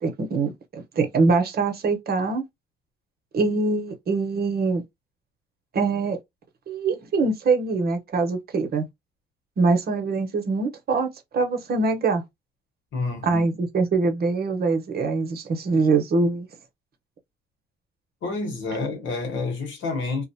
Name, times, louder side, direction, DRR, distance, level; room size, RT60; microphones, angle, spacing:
voice 1, 0.0-2.4 3.3-4.8 5.7-6.2 6.7-8.9 9.6-12.2 13.2-16.5, right 3 dB, 50° right, 0.8 m, -23 dB
voice 2, 12.9-13.4 18.2-20.2, left 3 dB, 75° left, 1.2 m, -29 dB
2.4 x 2.1 x 2.7 m
cardioid pair, 90°, 20 cm